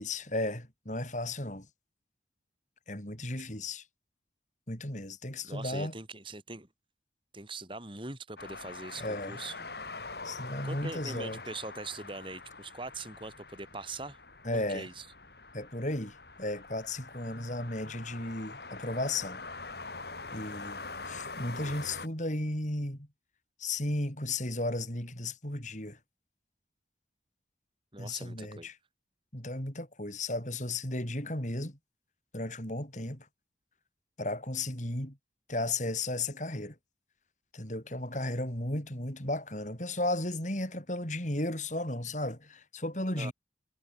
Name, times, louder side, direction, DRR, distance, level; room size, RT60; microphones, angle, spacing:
voice 1, 0.0-1.7 2.9-3.8 4.7-5.9 9.0-9.4 10.2-11.4 14.4-14.9 15.5-19.4 20.3-20.8 21.1-23.1 23.6-26.0 28.0-28.8 29.3-31.8 32.3-33.3 34.2-35.2 35.5-36.7 37.5-43.3, left 2 dB, 40° left, 7.5 m, -34 dB
voice 2, 5.4-6.7 7.3-9.7 10.6-14.2 14.5-15.1 27.9-28.7 43.2-43.3, right 3 dB, 30° right, 5.2 m, -42 dB
sound 1, 8.4-22.1, left 3 dB, 60° left, 4.5 m, -44 dB
head